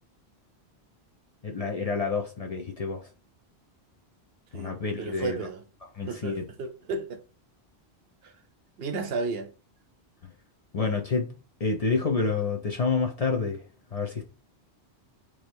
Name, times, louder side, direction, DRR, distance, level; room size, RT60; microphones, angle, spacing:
voice 1, 1.4-3.1 4.5-5.4 5.9-6.4 10.7-11.3 11.6-13.6 13.9-14.3, left 4 dB, 45° left, 0.6 m, -28 dB
voice 2, 4.5-5.6 6.1-7.2 8.2-8.3 8.8-9.5 12.4-12.5, right 4 dB, 70° right, 0.9 m, -33 dB
3.1 x 2.7 x 4.5 m
omnidirectional pair, 1.1 m